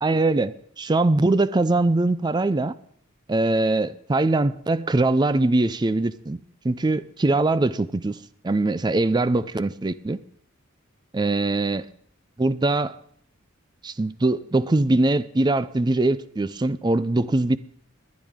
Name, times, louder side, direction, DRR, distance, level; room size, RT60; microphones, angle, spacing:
voice 1, 0.0-2.7 3.3-6.4 6.6-8.2 8.4-10.2 11.1-11.9 12.4-13.0 13.8-17.6, right 2 dB, 20° right, 0.4 m, -22 dB
20.0 x 10.5 x 3.6 m
head